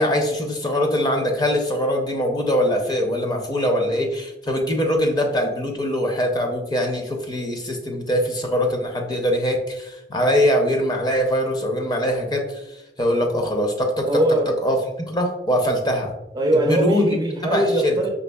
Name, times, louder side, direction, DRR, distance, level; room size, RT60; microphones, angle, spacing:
voice 1, 0.0-14.1 14.6-14.8 15.1-16.1 16.5-17.1 17.5-18.0, equal, 25° left, 2 dB, 0.6 m, -22 dB
voice 2, 14.1-14.5 16.3-18.1, right 1 dB, 20° right, 2 dB, 0.4 m, -21 dB
5.2 x 3.2 x 2.3 m, 0.90 s
head